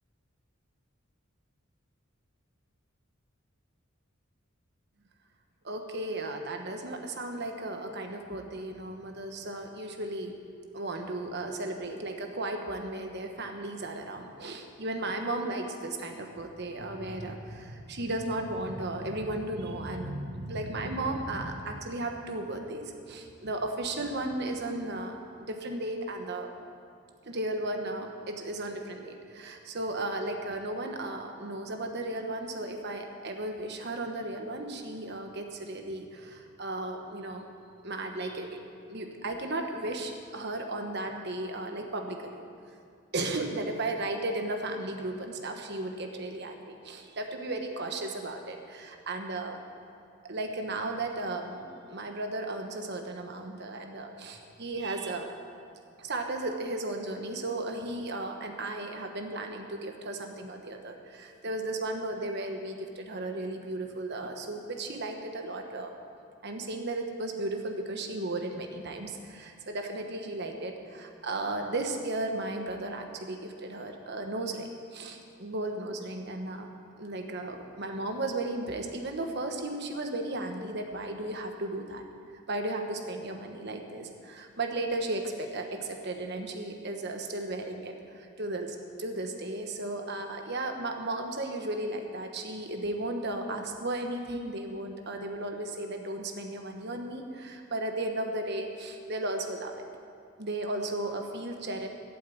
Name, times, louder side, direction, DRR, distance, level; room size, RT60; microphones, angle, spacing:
voice 1, 5.6-10.4 10.7-26.5 27.2-37.5 37.8-38.6 38.9-42.4 43.1-49.6 50.2-55.3 56.0-65.9 66.4-76.7 77.0-82.0 82.5-99.8 100.4-101.9, right 2 dB, 50° right, 4 dB, 1.3 m, -35 dB
12.0 x 8.5 x 8.5 m, 2.3 s
head